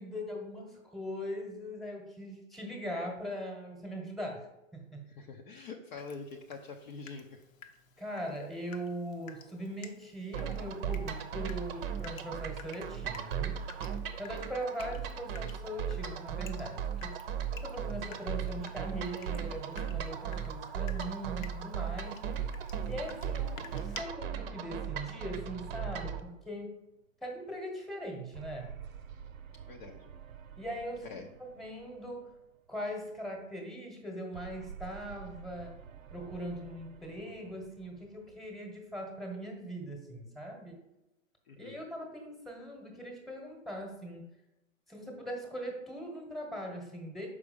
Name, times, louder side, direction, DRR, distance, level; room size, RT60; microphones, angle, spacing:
voice 1, 0.0-4.5 4.7-5.0 8.0-13.6 14.2-22.2 22.8-26.7 27.2-28.7 30.6-32.3 32.7-35.7 36.1-40.8 41.6-44.3 44.9-47.3, equal, ahead, 1 dB, 1.2 m, -40 dB
voice 2, 5.1-7.4 29.7-30.1 31.1-31.3 41.5-41.8, left 4 dB, 35° left, 2 dB, 0.7 m, -45 dB
Water tap faucet / Drip, 6.0-24.0, left 7 dB, 75° left, 0.9 m, -54 dB
sound 1, 10.3-26.2, right 8 dB, 45° right, 0.8 m, -37 dB
sound 2, 22.3-26.9 28.3-32.7 34.3-38.9, right 8 dB, 80° right, 0.8 m, -50 dB
6.0 x 5.0 x 5.2 m, 0.93 s
hypercardioid pair, 130°, 40 cm